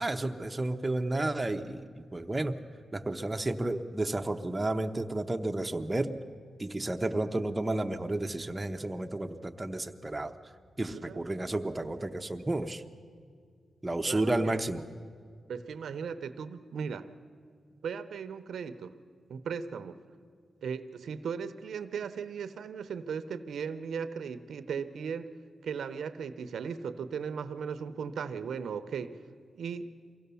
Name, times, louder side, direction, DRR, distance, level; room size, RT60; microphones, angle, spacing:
voice 1, 0.0-2.6 2.9-6.2 6.6-10.3 10.8-12.8 13.8-14.8, right 2 dB, 15° right, 4 dB, 0.9 m, -32 dB
voice 2, 10.9-11.2 14.1-14.5 15.5-17.1 17.8-18.9 19.3-20.0 20.6-25.3 25.6-29.2 29.5-29.9, right 6 dB, 90° right, 11 dB, 0.8 m, -37 dB
23.5 x 16.0 x 7.0 m, 2.1 s
wide cardioid pair, 100°, 0 cm